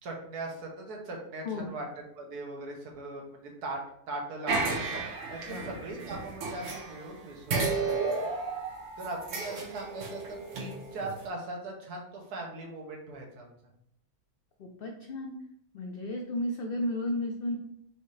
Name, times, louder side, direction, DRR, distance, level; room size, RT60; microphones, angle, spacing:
voice 1, 0.0-1.8 2.2-3.8 4.1-4.9 5.3-8.3 9.0-13.5, right 2 dB, 80° right, 0 dB, 1.5 m, -40 dB
voice 2, 1.4-1.8 5.5-5.8 14.6-15.4 15.7-17.6, left 1 dB, 85° left, 1 dB, 0.5 m, -33 dB
sound 1, 4.5-7.2 7.5-11.2, right 3 dB, 60° right, 1.1 m, -33 dB
5.1 x 2.7 x 3.2 m, 0.73 s
omnidirectional pair, 1.6 m